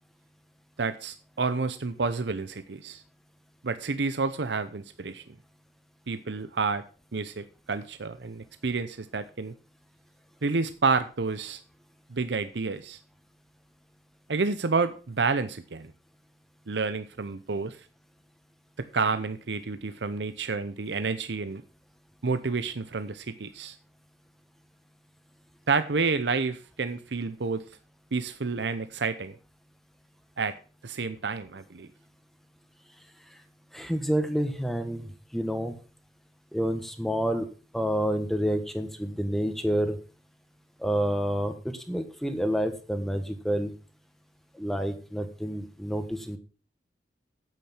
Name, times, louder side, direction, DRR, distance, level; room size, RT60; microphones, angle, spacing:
voice 1, 0.8-3.0 3.6-5.2 6.1-6.8 7.1-9.5 10.4-11.6 12.1-13.0 14.3-15.9 16.7-17.8 18.8-21.6 22.2-23.8 25.7-27.6 28.1-29.3 30.4-30.6 30.8-31.9, right 4 dB, 80° right, 11 dB, 0.7 m, -29 dB
voice 2, 33.7-35.7 36.5-37.4 37.7-40.0 40.8-43.7 44.5-46.4, equal, ahead, 7 dB, 1.3 m, -28 dB
9.2 x 8.6 x 5.8 m, 0.37 s
head